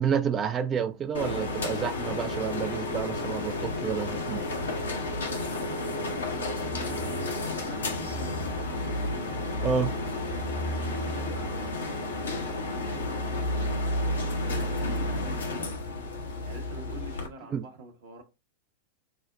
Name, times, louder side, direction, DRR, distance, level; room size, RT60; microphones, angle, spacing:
voice 1, 0.0-4.5 9.6-10.0 17.5-17.6, right 7 dB, 25° right, 0.4 m, -29 dB
sound 1, 1.1-17.3, left 2 dB, 70° left, 0.8 m, -31 dB
voice 2, 5.3-6.5 6.8-9.0 10.6-11.8 12.7-14.3 14.7-15.7 16.2-18.2, right 2 dB, 55° right, 0.8 m, -46 dB
5.4 x 2.1 x 2.4 m
figure-of-eight pair, 90°, 0 cm